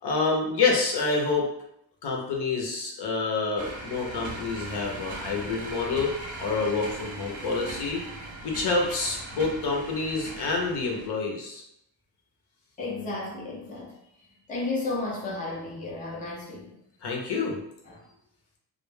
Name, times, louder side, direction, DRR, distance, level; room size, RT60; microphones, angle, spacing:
voice 1, 0.0-1.5 2.0-6.1 6.4-8.0 8.4-11.6 17.0-17.6, left 4 dB, 65° left, 0 dB, 0.7 m, -27 dB
sound 1, 3.6-11.1, right 2 dB, 45° right, 0.5 m, -39 dB
voice 2, 12.8-13.9 14.5-16.7 17.9-18.0, left 2 dB, 20° left, -4 dB, 0.4 m, -33 dB
2.2 x 2.0 x 3.1 m, 0.76 s
wide cardioid pair, 170°, 43 cm